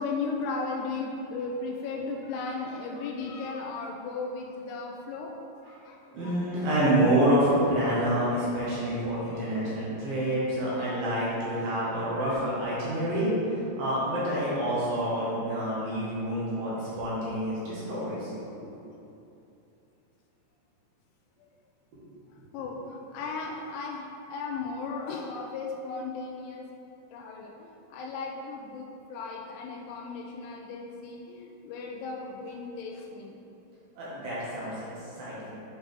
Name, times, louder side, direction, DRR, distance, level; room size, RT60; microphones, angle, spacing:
voice 1, 0.0-5.4 5.8-6.7 9.0-9.6 10.7-11.0 11.7-12.5 13.0-13.1 21.4-21.5 22.5-26.7 27.1-33.4, left 4 dB, 85° left, 1 dB, 2.4 m, -36 dB
voice 2, 6.1-18.3 18.6-18.7 21.9-22.0 34.0-35.5, right 1 dB, 65° right, -9 dB, 2.7 m, -28 dB
8.3 x 4.1 x 3.4 m, 2.8 s
omnidirectional pair, 4.9 m